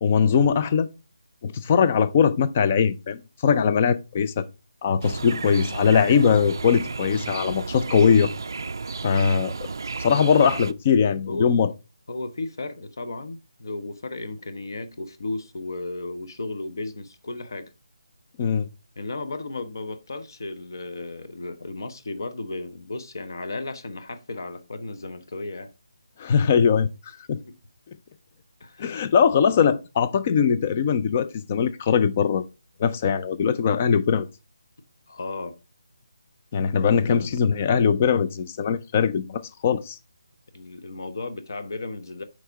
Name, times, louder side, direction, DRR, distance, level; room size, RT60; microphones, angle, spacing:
voice 1, 0.0-0.9 1.4-4.5 4.8-8.3 9.0-9.7 10.0-11.7 18.4-18.7 26.2-26.9 27.3-27.4 28.8-32.4 32.8-34.3 36.5-40.0, left 6 dB, 15° left, 0.4 m, -21 dB
sound 1, 5.0-10.7, right 4 dB, 50° right, 0.4 m, -33 dB
voice 2, 11.3-11.6 12.1-17.7 19.0-25.7 27.5-27.6 28.6-29.0 35.1-35.6 36.8-37.4 40.5-42.2, left 2 dB, 50° left, 1.0 m, -34 dB
6.5 x 4.8 x 4.6 m
hypercardioid pair, 175°, 3 cm